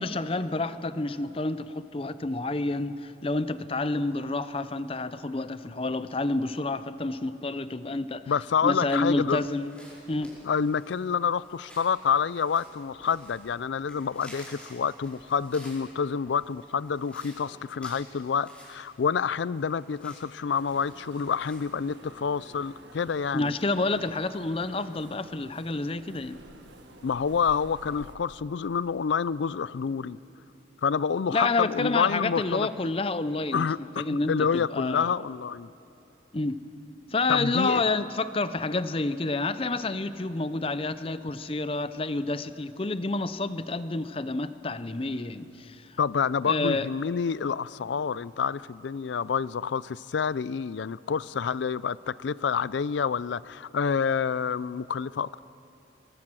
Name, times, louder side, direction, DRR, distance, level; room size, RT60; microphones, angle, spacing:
voice 1, 0.0-8.2 8.6-9.7 10.1-10.3 23.3-26.4 31.3-33.7 34.0-35.1 36.3-36.6 37.1-46.0 46.5-46.9, left 2 dB, 30° left, 13 dB, 0.6 m, -29 dB
voice 2, 8.3-9.4 10.5-23.5 27.0-30.2 30.8-32.7 33.5-35.7 37.3-37.8 46.0-55.4, left 6 dB, 70° left, 20 dB, 0.4 m, -28 dB
sound 1, 9.1-21.6, equal, 5° left, 5.0 m, -52 dB
sound 2, 20.5-28.1, right 2 dB, 70° right, 1.7 m, -51 dB
22.5 x 22.0 x 6.3 m, 2.9 s
head